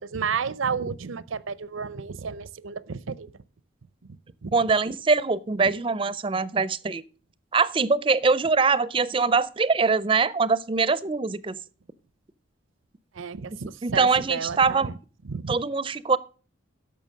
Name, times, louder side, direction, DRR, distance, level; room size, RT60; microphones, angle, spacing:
voice 1, 0.0-3.3 4.1-4.6 13.1-14.9 15.3-15.6, right 5 dB, 85° right, 0.6 m, -32 dB
voice 2, 4.5-7.0 7.5-11.6 13.8-14.9 15.5-16.2, right 4 dB, 25° right, 0.4 m, -23 dB
11.0 x 7.0 x 6.4 m
head